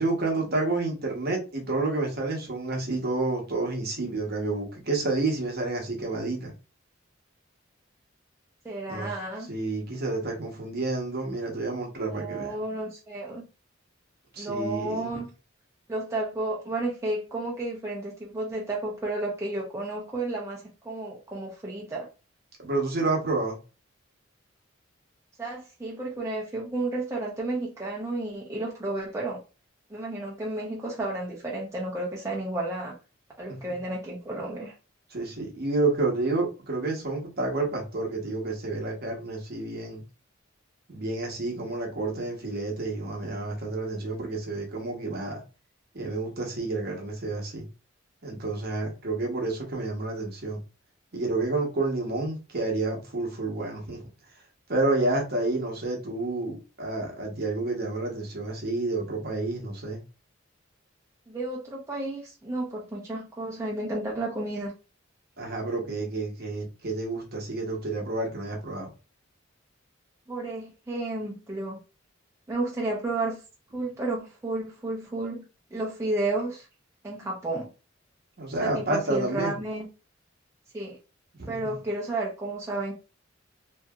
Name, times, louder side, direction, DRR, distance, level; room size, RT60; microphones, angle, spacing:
voice 1, 0.0-6.5 8.9-9.1 9.5-12.6 14.3-15.2 22.6-23.6 33.5-33.6 35.1-40.0 40.9-45.4 45.9-47.6 48.2-50.6 51.1-54.0 54.7-60.0 65.4-68.9 78.4-79.5 81.4-81.6, right 2 dB, 50° right, 1.0 m, -29 dB
voice 2, 8.6-9.5 12.1-13.5 14.4-15.3 15.9-22.1 25.4-29.4 29.9-33.0 33.4-34.7 61.3-64.7 70.3-71.8 72.5-73.4 73.7-75.4 75.7-76.7 77.0-77.7 78.6-79.9 80.7-81.0 81.5-82.9, right 2 dB, 15° right, 0.6 m, -32 dB
2.7 x 2.7 x 2.3 m
head